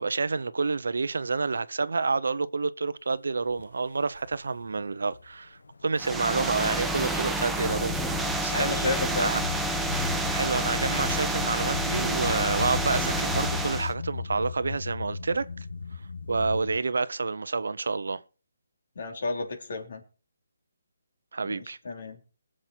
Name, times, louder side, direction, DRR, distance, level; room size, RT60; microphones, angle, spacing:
voice 1, 0.0-8.8 9.2-9.4 10.3-15.5 16.3-18.2 21.3-21.8, right 4 dB, 75° right, 0.9 m, -29 dB
sound 1, 3.5-3.7 4.1-5.3 5.6-6.6 7.1-16.8, left 5 dB, 85° left, 1.3 m, -36 dB
sound 2, 6.0-13.9, right 1 dB, 5° right, 0.7 m, -29 dB
voice 2, 8.5-9.4 19.0-20.0 21.4-22.2, left 3 dB, 55° left, 3.1 m, -32 dB
21.0 x 7.6 x 4.5 m
hypercardioid pair, 170°, 0 cm